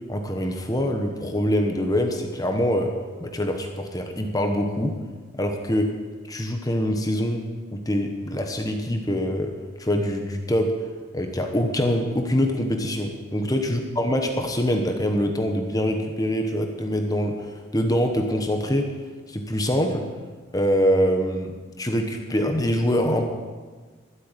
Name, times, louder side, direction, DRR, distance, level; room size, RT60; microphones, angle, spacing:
voice 1, 0.1-2.9 3.2-5.0 5.4-5.9 6.3-7.4 7.7-9.5 9.8-10.7 11.1-18.9 19.3-20.0 20.5-23.3, equal, 15° left, 4 dB, 1.1 m, -24 dB
13.0 x 8.0 x 9.0 m, 1.4 s
head